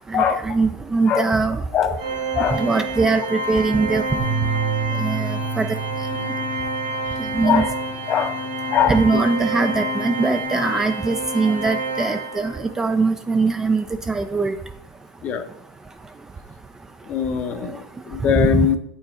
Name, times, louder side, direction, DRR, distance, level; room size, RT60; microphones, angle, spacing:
voice 1, 0.1-1.6 2.5-4.2 5.0-5.7 6.1-6.3 7.2-7.6 8.9-14.5 17.6-17.7 18.3-18.7, right 4 dB, 15° right, 8 dB, 0.4 m, -21 dB
Organ, 2.0-12.7, right 1 dB, 90° right, 2.0 m, -28 dB
sound 1, 4.2-10.4, right 7 dB, 60° right, 2.1 m, -31 dB
voice 2, 8.1-8.4 8.7-9.2 15.2-15.4 17.1-18.8, left 9 dB, 35° left, 9 dB, 0.7 m, -21 dB
8.2 x 4.6 x 4.3 m, 0.73 s
supercardioid pair, 130°, 4 cm